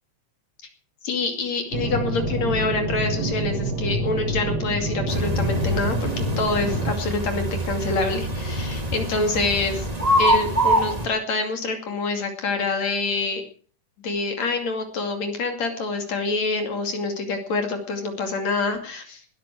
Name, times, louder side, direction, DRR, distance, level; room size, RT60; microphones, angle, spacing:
voice 1, 1.0-9.9 10.2-13.4 14.0-19.2, left 3 dB, 60° left, 5 dB, 3.7 m, -26 dB
sound 1, 1.7-6.9, right 1 dB, 40° right, 1.8 m, -27 dB
sound 2, 5.1-11.1, right 1 dB, 15° right, 1.6 m, -25 dB
20.0 x 13.0 x 4.7 m, 0.43 s
omnidirectional pair, 3.7 m